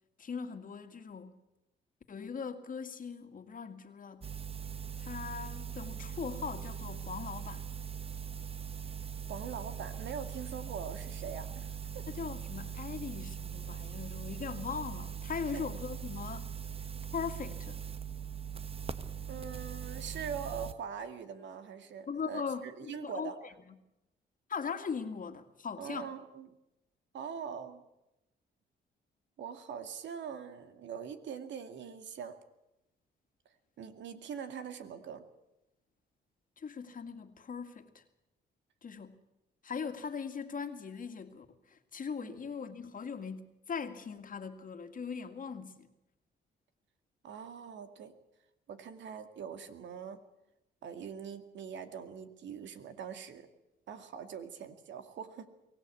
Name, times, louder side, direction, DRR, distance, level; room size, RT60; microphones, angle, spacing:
voice 1, 0.2-1.4 2.1-4.3 5.0-7.7 12.1-16.5 17.1-17.8 22.1-23.5 24.5-26.1 36.6-38.0 38.8-39.2 39.6-45.9, left 6 dB, 45° left, 2.2 m, -40 dB
sound 1, 4.2-20.7, right 7 dB, 30° right, 1.4 m, -41 dB
voice 2, 9.3-12.0 15.4-15.7 19.3-23.4 25.8-26.5 27.1-27.8 29.4-32.4 33.8-35.3 42.2-42.5 47.2-48.2 48.7-50.2 50.8-53.5 53.9-55.5, right 7 dB, 70° right, 2.3 m, -43 dB
23.5 x 17.0 x 8.5 m
cardioid pair, 80°, 19 cm